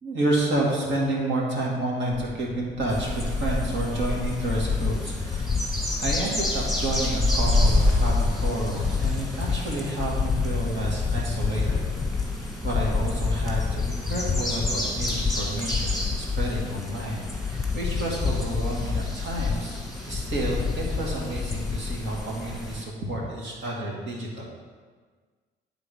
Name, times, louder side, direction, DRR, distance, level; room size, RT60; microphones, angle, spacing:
voice 1, 0.0-5.5 6.0-11.8 12.6-19.8 20.0-24.5, right 1 dB, 70° right, -2 dB, 2.0 m, -30 dB
sound 1, 2.2-22.0, left 5 dB, 25° left, 0.5 m, -29 dB
sound 2, 2.9-22.8, left 1 dB, ahead, 1.7 m, -30 dB
9.5 x 3.8 x 4.9 m, 1.5 s
cardioid pair, 90°, 20 cm